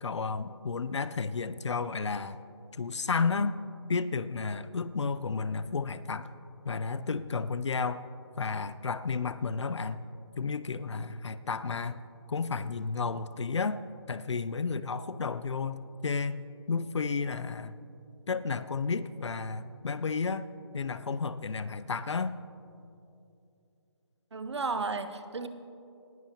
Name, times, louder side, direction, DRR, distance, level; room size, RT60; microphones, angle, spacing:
voice 1, 0.0-2.4 2.8-3.6 3.9-6.3 6.6-8.0 8.4-10.1 10.4-12.0 12.3-13.8 14.1-17.8 18.3-20.5 20.7-22.4, left 4 dB, 75° left, 14 dB, 0.5 m, -32 dB
voice 2, 24.3-25.5, right 4 dB, 70° right, 10 dB, 0.8 m, -33 dB
18.5 x 11.0 x 2.9 m, 2.7 s
hypercardioid pair, 180°, 15 cm